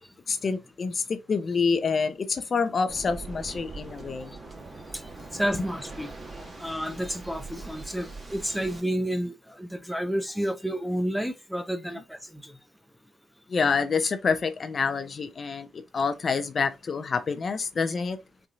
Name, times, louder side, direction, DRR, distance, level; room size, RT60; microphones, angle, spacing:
voice 1, 0.3-4.3 13.5-18.2, left 5 dB, 50° left, 0.6 m, -27 dB
Waves surf, 2.9-8.8, right 3 dB, 30° right, 1.5 m, -42 dB
voice 2, 5.3-6.1 6.6-12.6, equal, ahead, 0.6 m, -30 dB
5.6 x 2.7 x 2.4 m
hypercardioid pair, 45°, 0 cm